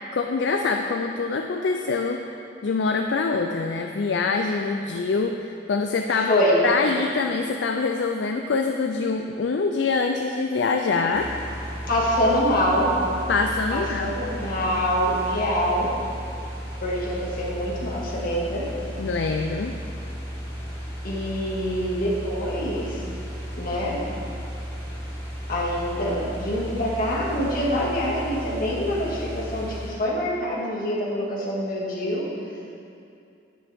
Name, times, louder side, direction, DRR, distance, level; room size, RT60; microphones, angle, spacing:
voice 1, 0.1-2.3 2.6-6.4 6.6-11.3 13.3-14.1 19.0-19.8, left 4 dB, 70° left, 4 dB, 0.4 m, -25 dB
voice 2, 6.3-6.7 11.9-12.9 13.7-15.9 16.8-18.7 21.0-23.0 23.6-24.0 25.5-32.2, equal, 50° left, -5 dB, 2.0 m, -25 dB
sound 1, 11.1-29.9, equal, 15° left, 2.5 m, -34 dB
9.9 x 9.7 x 3.6 m, 2.5 s
head